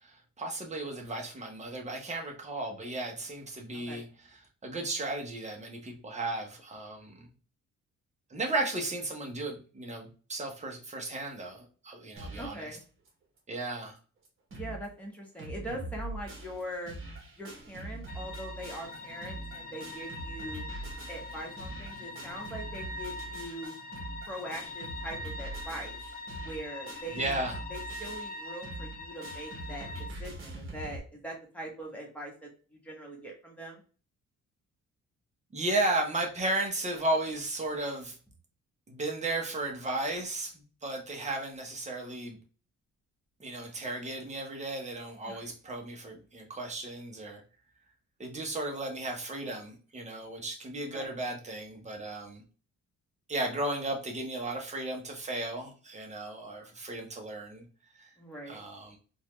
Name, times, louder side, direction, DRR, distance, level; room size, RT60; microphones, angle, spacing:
voice 1, 0.0-4.0 4.6-7.3 8.3-12.7 13.5-14.0 27.1-27.6 35.5-38.2 38.9-42.4 43.4-47.4 48.2-52.4 53.3-57.6 58.0-58.1 58.5-59.0, right 2 dB, 25° right, 1 dB, 0.9 m, -35 dB
voice 2, 3.7-4.0 12.3-12.8 14.5-16.9 17.3-20.7 21.1-23.7 24.3-26.0 26.4-27.3 27.7-29.9 30.2-33.8 45.3-45.5 50.9-51.1 58.2-58.6, right 1 dB, 5° left, -1 dB, 1.3 m, -42 dB
sound 1, 12.2-12.6 13.1-13.2 13.4-13.5 14.0-14.1 14.2-14.9 15.1-31.0, right 2 dB, 45° right, 1.4 m, -43 dB
sound 2, 18.1-30.1, left 2 dB, 30° left, 0.5 m, -43 dB
4.0 x 2.5 x 3.1 m, 0.38 s
cardioid pair, 140°, 30 cm